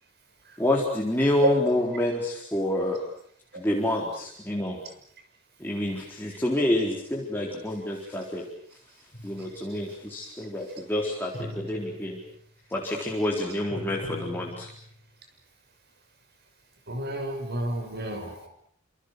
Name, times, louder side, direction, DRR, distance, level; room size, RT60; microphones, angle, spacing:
voice 1, 0.6-3.0 3.5-4.8 5.6-8.4 9.2-12.2 12.7-14.7, left 1 dB, 10° left, -2 dB, 4.2 m, -28 dB
sound 1, 9.1-9.7 11.3-12.4 13.7-15.0, left 1 dB, 35° left, 5.9 m, -40 dB
voice 2, 16.9-18.5, right 1 dB, 50° right, 6 dB, 6.6 m, -29 dB
29.0 x 27.0 x 6.7 m, 0.63 s
head